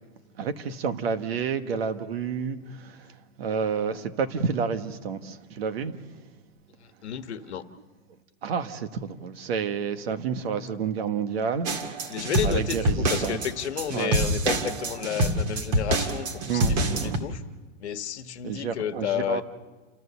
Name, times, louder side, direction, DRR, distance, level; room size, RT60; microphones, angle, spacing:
voice 1, 0.4-6.4 8.4-13.4 13.9-14.2 16.4-17.3 18.4-19.4, right 6 dB, 50° right, 1.6 m, -30 dB
voice 2, 7.0-7.6 12.1-17.4 17.8-19.4, left 10 dB, 55° left, 1.5 m, -31 dB
sound 1, 11.6-17.2, right 1 dB, 30° right, 2.2 m, -26 dB
30.0 x 14.0 x 6.9 m
hypercardioid pair, 175°, 39 cm